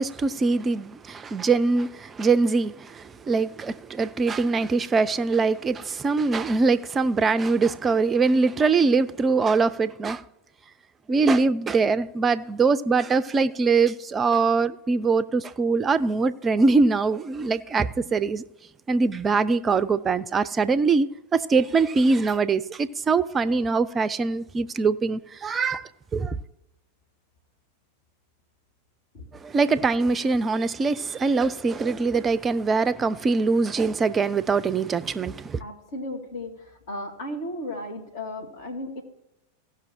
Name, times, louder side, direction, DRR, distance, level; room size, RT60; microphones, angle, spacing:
voice 1, 0.0-10.2 11.1-18.4 18.9-21.1 21.3-26.4 29.4-35.6, right 4 dB, 20° right, 0.5 m, -23 dB
voice 2, 35.6-39.0, left 1 dB, 55° left, 1.9 m, -35 dB
15.5 x 6.0 x 4.3 m
figure-of-eight pair, 90°, 0 cm